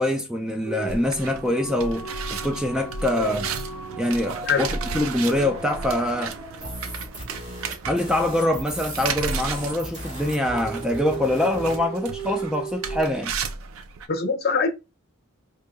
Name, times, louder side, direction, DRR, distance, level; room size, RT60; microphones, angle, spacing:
voice 1, 0.0-3.6 4.0-6.4 7.9-13.3, left 1 dB, 5° right, 0.3 m, -24 dB
sound 1, 0.6-7.6 10.2-13.0, right 4 dB, 20° right, 1.7 m, -37 dB
sound 2, 0.9-14.1, right 5 dB, 75° right, 0.4 m, -34 dB
sound 3, 6.6-11.8, right 1 dB, 40° right, 1.3 m, -37 dB
voice 2, 14.1-14.7, left 5 dB, 50° left, 0.7 m, -23 dB
4.8 x 2.7 x 2.2 m
head